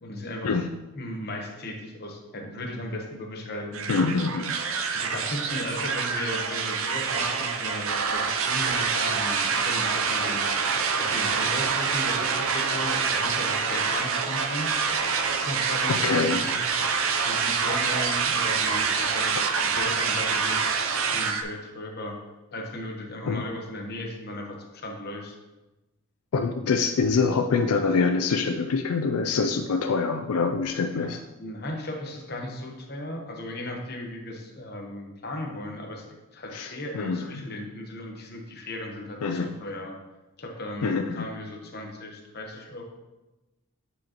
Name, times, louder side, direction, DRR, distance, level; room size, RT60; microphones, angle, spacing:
voice 1, 0.0-0.5 0.9-3.9 4.9-10.4 10.9-14.7 15.4-20.6 20.9-22.2 22.5-25.3 30.9-31.1 31.4-39.9 40.4-42.8, left 1 dB, 45° left, 1 dB, 1.0 m, -36 dB
sound 1, 3.7-21.4, right 5 dB, 65° right, 0.5 m, -26 dB
voice 2, 3.9-4.5 15.9-16.4 23.3-23.4 26.3-31.2 36.5-37.2 39.2-39.5 40.8-41.3, left 4 dB, 85° left, 5 dB, 0.4 m, -25 dB
9.0 x 4.9 x 3.0 m, 1.1 s
head